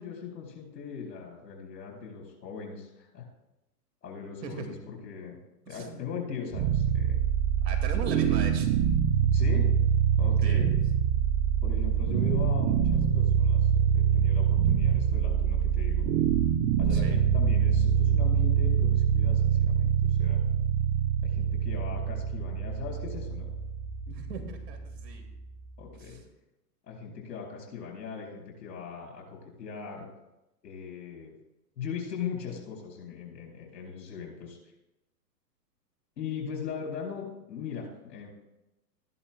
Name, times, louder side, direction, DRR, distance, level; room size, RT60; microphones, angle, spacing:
voice 1, 0.0-3.2 4.0-5.4 5.7-7.2 9.2-9.7 10.2-10.7 11.6-16.1 16.8-20.4 21.2-23.5 25.8-26.2 26.8-30.1 30.6-31.3 31.8-34.6 36.2-38.3, left 6 dB, 75° left, -1 dB, 4.4 m, -39 dB
voice 2, 5.7-6.1 7.6-8.7 10.4-10.6 16.9-17.2 24.1-25.3 25.9-26.2, right 4 dB, 75° right, 5 dB, 2.1 m, -38 dB
sound 1, 6.5-25.6, right 8 dB, 25° right, 0.5 m, -25 dB
14.5 x 11.0 x 2.2 m, 0.93 s
hypercardioid pair, 120°, 49 cm